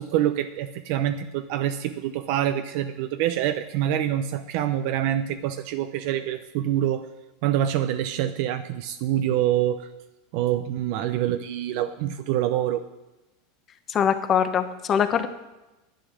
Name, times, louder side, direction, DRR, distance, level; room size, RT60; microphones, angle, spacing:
voice 1, 0.0-7.1 7.4-9.9 10.3-12.8, right 11 dB, 60° right, 9 dB, 0.6 m, -26 dB
voice 2, 13.9-15.3, left 8 dB, 30° left, 10 dB, 1.0 m, -22 dB
10.5 x 9.3 x 6.3 m, 1.0 s
supercardioid pair, 125°, 0 cm